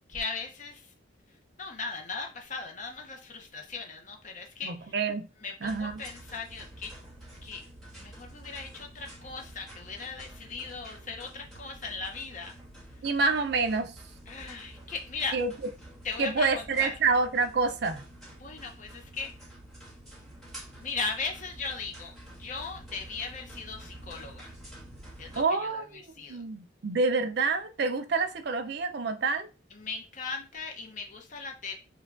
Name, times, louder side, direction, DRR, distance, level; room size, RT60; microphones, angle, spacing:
voice 1, 0.1-0.9 1.6-5.0 5.4-6.9 7.4-7.6 7.9-12.5 14.3-15.4 16.0-16.9 18.4-19.3 20.8-24.5 25.2-26.4 29.7-31.7, left 4 dB, 40° left, 0.6 m, -38 dB
voice 2, 4.6-5.3 5.6-6.0 13.0-13.9 15.3-15.5 16.2-18.0 25.4-25.9 26.3-29.5, right 4 dB, 55° right, 0.4 m, -27 dB
sound 1, 5.6-25.4, right 1 dB, ahead, 1.3 m, -48 dB
5.7 x 2.2 x 2.4 m
head